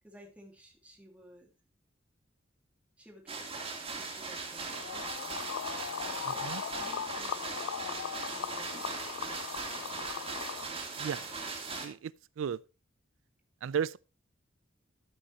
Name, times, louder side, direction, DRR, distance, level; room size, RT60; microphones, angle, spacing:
voice 1, 0.0-1.5 3.0-5.5 6.0-6.5 6.8-8.7 9.7-10.0, equal, 5° right, 1.8 m, -55 dB
sound 1, 3.3-11.9, right 4 dB, 30° right, 2.2 m, -39 dB
sound 2, 4.6-10.6, left 8 dB, 75° left, 0.4 m, -39 dB
voice 2, 6.2-6.6 11.0-11.3 11.8-12.6 13.6-14.0, right 7 dB, 75° right, 0.4 m, -35 dB
12.5 x 6.8 x 2.9 m
head